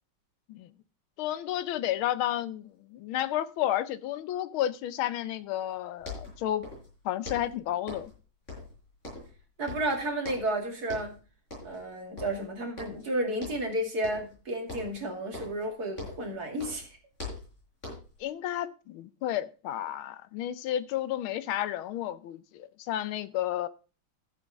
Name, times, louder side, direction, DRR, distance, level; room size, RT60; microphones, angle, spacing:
voice 1, 1.2-6.7 7.0-8.1 18.2-23.7, left 12 dB, 75° left, 1.6 m, -32 dB
sound 1, 5.7-5.8 6.0-6.9 7.2-8.2 8.5-9.4 9.7-10.6 10.9-11.2 11.5-11.9 12.2-13.1 13.4-13.7 14.0-14.4 14.7-16.3 16.6-18.2, left 2 dB, 30° left, 6.6 m, -42 dB
voice 2, 9.6-11.1 11.6-16.9, right 1 dB, 45° right, 2.9 m, -32 dB
13.5 x 8.3 x 3.5 m
omnidirectional pair, 2.3 m